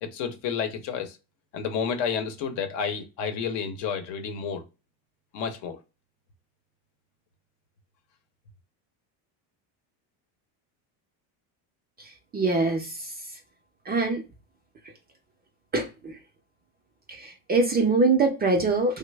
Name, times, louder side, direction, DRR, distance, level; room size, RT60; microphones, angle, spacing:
voice 1, 0.0-1.2 1.5-4.6 5.3-5.8, left 6 dB, 65° left, 0.8 m, -30 dB
voice 2, 12.0-13.1 13.9-14.2 15.7-16.2 17.1-19.0, right 3 dB, 20° right, 0.4 m, -24 dB
3.1 x 2.0 x 3.2 m
cardioid pair, 130°, 46 cm